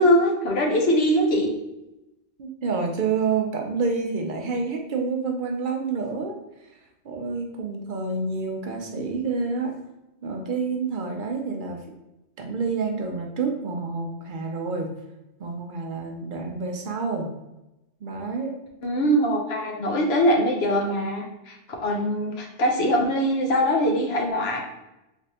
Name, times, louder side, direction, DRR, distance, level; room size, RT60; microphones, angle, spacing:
voice 1, 0.0-1.5 18.8-21.6 21.8-24.6, equal, 65° left, 1 dB, 1.0 m, -22 dB
voice 2, 2.4-6.8 7.0-9.8 10.2-11.9 12.4-14.9 15.4-17.3 18.0-18.6, right 4 dB, 60° right, 2 dB, 0.6 m, -28 dB
3.3 x 3.1 x 2.8 m, 0.94 s
omnidirectional pair, 1.1 m